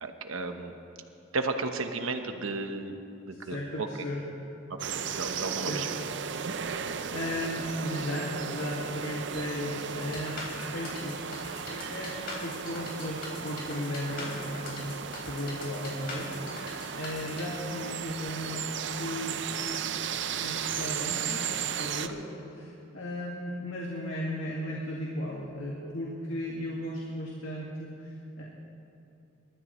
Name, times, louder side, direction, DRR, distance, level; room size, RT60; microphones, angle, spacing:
voice 1, 0.0-0.8 1.3-3.0 3.2-3.9 4.9-5.9 15.0-15.1, right 3 dB, 90° right, 6 dB, 1.1 m, -34 dB
voice 2, 3.4-4.2 5.5-5.9 7.1-10.4 10.7-11.2 11.7-15.0 15.3-19.4 20.4-28.4, left 1 dB, 80° left, -4 dB, 2.0 m, -36 dB
Woods ambience summer UK birds light wind through trees, 4.8-22.1, right 7 dB, 60° right, 0.6 m, -35 dB
sound 1, 9.9-17.4, left 3 dB, 50° left, 3.4 m, -42 dB
27.5 x 13.5 x 3.1 m, 2.7 s
head